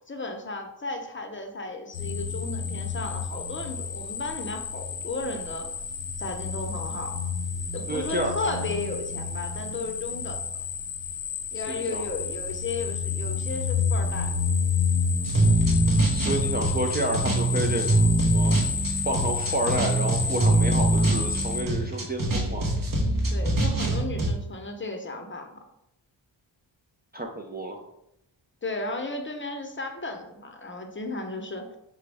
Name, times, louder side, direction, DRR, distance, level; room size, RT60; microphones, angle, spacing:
voice 1, 0.1-5.7 6.2-7.1 7.7-10.4 11.5-14.3 14.8-14.9 23.3-25.5 28.6-31.8, left 3 dB, 25° left, 4 dB, 0.7 m, -34 dB
sound 1, 1.9-21.6, left 5 dB, 80° left, 0.8 m, -30 dB
voice 2, 7.9-8.3 11.7-12.1 16.1-18.5 19.0-22.6 27.1-27.8, right 1 dB, 20° right, 2 dB, 0.5 m, -30 dB
sound 2, 15.2-24.3, right 2 dB, 45° right, 1.1 m, -24 dB
6.0 x 2.2 x 3.4 m, 0.83 s
cardioid pair, 60°, 46 cm